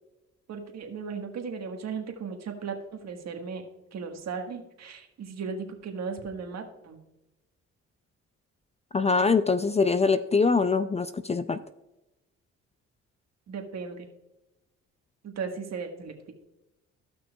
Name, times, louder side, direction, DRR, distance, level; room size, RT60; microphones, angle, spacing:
voice 1, 0.5-3.6 3.9-7.0 13.5-14.1 15.2-16.3, right 5 dB, 60° right, 4 dB, 1.5 m, -36 dB
voice 2, 8.9-11.6, left 4 dB, 20° left, 12 dB, 0.4 m, -23 dB
15.0 x 5.9 x 2.3 m, 0.97 s
cardioid pair, 90°, 30 cm